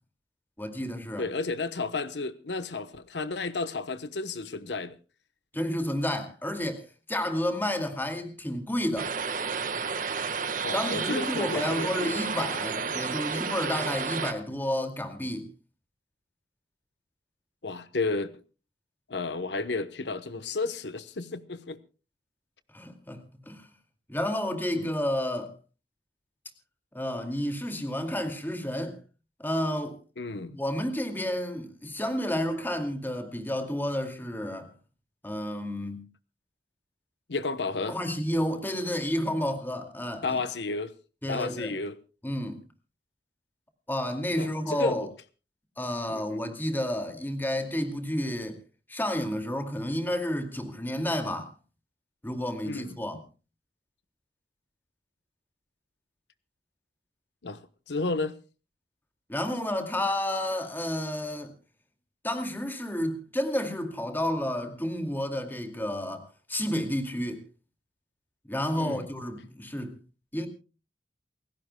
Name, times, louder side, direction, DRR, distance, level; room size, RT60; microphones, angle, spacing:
voice 1, 0.6-1.3 5.5-9.1 10.7-15.5 22.7-23.7 24.1-25.5 26.9-29.0 29.4-30.0 30.5-34.7 35.2-36.1 37.9-40.4 41.2-41.7 42.2-42.6 43.9-45.1 45.8-48.6 48.9-51.5 52.2-53.2 59.3-61.5 62.2-67.4 68.5-70.0 70.3-70.5, left 1 dB, 10° left, 2.3 m, -31 dB
voice 2, 1.2-4.9 10.6-12.2 17.6-18.3 19.1-21.8 24.7-24.9 30.2-30.6 37.3-38.0 40.2-40.9 41.3-42.0 44.4-45.1 46.1-46.4 52.6-52.9 57.4-57.6 57.9-58.3 68.8-69.1, left 3 dB, 75° left, 1.0 m, -32 dB
sound 1, 9.0-14.3, right 5 dB, 50° right, 1.5 m, -31 dB
29.0 x 16.0 x 2.2 m
head